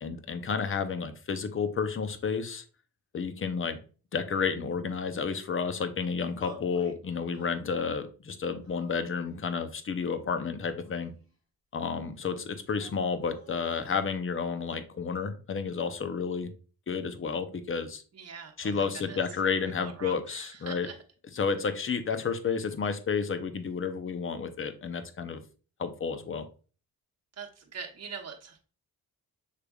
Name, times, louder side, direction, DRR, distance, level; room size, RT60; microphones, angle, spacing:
voice 1, 0.0-2.6 3.1-3.8 4.1-11.1 11.7-16.5 16.9-18.0 18.6-20.9 21.4-25.4 25.8-26.5, left 5 dB, 35° left, 9 dB, 0.6 m, -31 dB
sound 1, 6.4-7.0 7.3-8.0 8.6-9.5 10.3-11.3 12.7-14.0, left 3 dB, 60° left, 2.6 m, -52 dB
voice 2, 18.1-19.2 19.6-21.0 27.3-28.6, right 6 dB, 40° right, 2 dB, 1.0 m, -43 dB
6.5 x 3.3 x 2.3 m, 0.37 s
cardioid pair, 80°, 37 cm